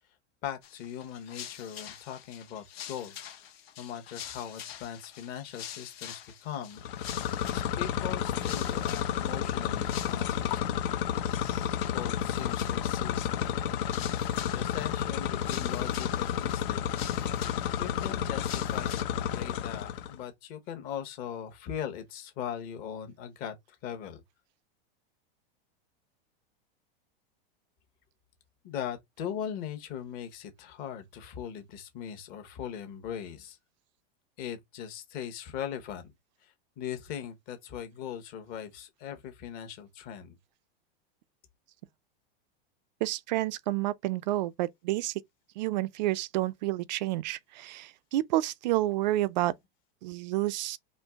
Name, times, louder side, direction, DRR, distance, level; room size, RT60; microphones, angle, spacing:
voice 1, 0.4-3.2 3.8-7.2 7.5-11.1 11.9-14.0 14.4-16.9 17.8-24.2 28.6-33.6 34.4-36.1 36.4-40.4, left 9 dB, 30° left, 1.0 m, -40 dB
sound 1, 0.6-10.8 11.3-11.9 12.2-13.0 13.4-19.0, left 10 dB, 90° left, 1.2 m, -46 dB
sound 2, 6.8-20.2, left 10 dB, 60° left, 0.6 m, -31 dB
voice 2, 43.0-45.2 45.6-49.5 50.0-50.8, right 16 dB, 50° right, 0.4 m, -29 dB
4.4 x 3.1 x 3.5 m
supercardioid pair, 170°, 30 cm